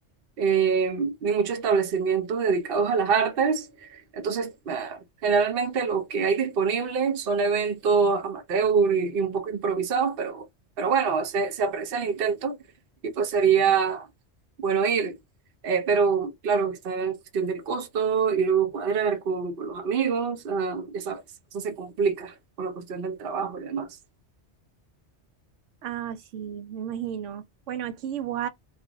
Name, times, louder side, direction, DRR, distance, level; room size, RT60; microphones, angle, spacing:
voice 1, 0.4-10.5 10.8-12.6 13.0-14.1 14.6-15.2 15.6-21.2 21.5-24.0, right 6 dB, 55° right, 0.8 m, -25 dB
voice 2, 25.8-28.5, right 10 dB, 90° right, 1.0 m, -33 dB
2.5 x 2.4 x 3.8 m
omnidirectional pair, 1.2 m